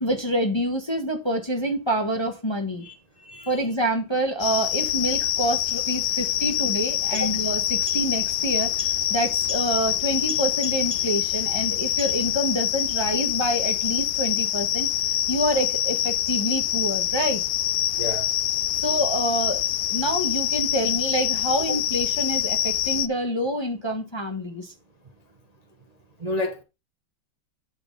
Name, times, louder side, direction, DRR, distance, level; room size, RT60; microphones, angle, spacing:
voice 1, 0.0-2.8 3.5-14.9 15.3-17.4 18.7-19.6 19.9-24.7, right 1 dB, 20° left, 0.9 m, -27 dB
sound 1, 4.4-23.1, left 12 dB, 75° left, 1.1 m, -25 dB
sound 2, 6.8-12.6, right 6 dB, 50° right, 1.7 m, -44 dB
voice 2, 18.0-18.3 21.7-21.8 26.2-26.6, left 2 dB, 30° right, 0.8 m, -29 dB
8.7 x 4.3 x 5.3 m
omnidirectional pair, 2.2 m